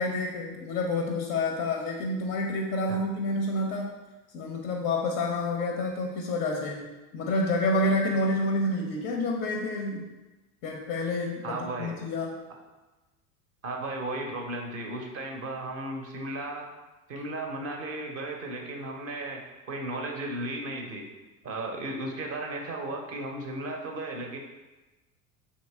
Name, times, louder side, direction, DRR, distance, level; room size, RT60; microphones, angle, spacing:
voice 1, 0.0-3.9 4.3-6.9 7.1-10.1 10.6-12.3, left 2 dB, 30° left, 1 dB, 0.4 m, -28 dB
voice 2, 11.4-11.9 13.6-16.7 17.1-19.4 19.7-21.1 21.4-24.4, right 2 dB, 30° right, 2 dB, 0.6 m, -35 dB
2.9 x 2.7 x 3.2 m, 1.1 s
figure-of-eight pair, 80°, 47 cm